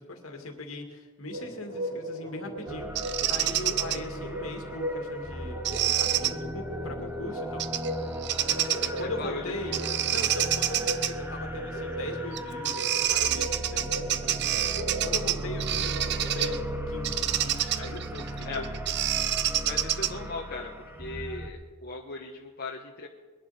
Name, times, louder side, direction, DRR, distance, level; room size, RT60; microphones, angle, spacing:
voice 1, 0.0-7.7 8.8-9.8 10.0-16.0 16.3-18.7, left 2 dB, 70° left, 3 dB, 2.2 m, -40 dB
sound 1, 1.3-16.6, right 1 dB, 80° right, 5.1 m, -37 dB
sound 2, 2.7-21.5, equal, 10° right, 1.0 m, -37 dB
Bird vocalization bird call bird song, 3.0-4.0 5.6-6.3 7.6-7.9 8.2-9.0 9.7-11.1 12.3-12.4 12.7-16.6 17.0-20.3, right 12 dB, 50° right, 0.5 m, -28 dB
voice 2, 9.0-10.0 18.4-18.6 19.6-23.1, left 3 dB, 45° left, -1 dB, 1.2 m, -38 dB
22.0 x 11.0 x 4.2 m, 1.3 s
head